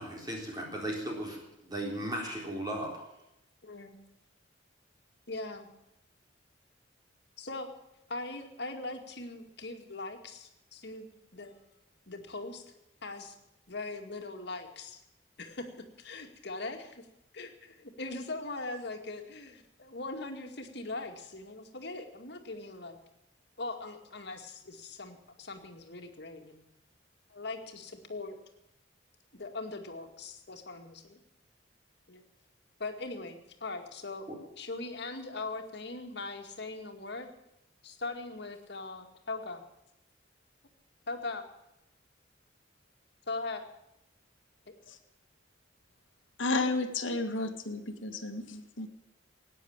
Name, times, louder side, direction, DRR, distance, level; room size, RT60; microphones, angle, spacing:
voice 1, 0.0-3.0 34.3-34.4, right 1 dB, 20° right, 0 dB, 3.9 m, -36 dB
voice 2, 3.6-4.0 5.3-5.7 7.4-7.7 8.1-11.5 12.1-12.6 13.0-13.4 13.7-15.0 15.4-15.7 16.0-17.0 17.3-23.0 23.6-26.6 27.3-28.4 29.3-31.2 32.1-32.2 32.8-34.3 34.6-37.3 37.8-39.6 41.1-41.4 43.3-43.6 44.7-44.8, left 3 dB, 60° left, 5 dB, 2.2 m, -40 dB
voice 3, 46.4-48.9, left 3 dB, 90° left, 7 dB, 1.9 m, -32 dB
16.5 x 9.9 x 8.8 m, 0.86 s
head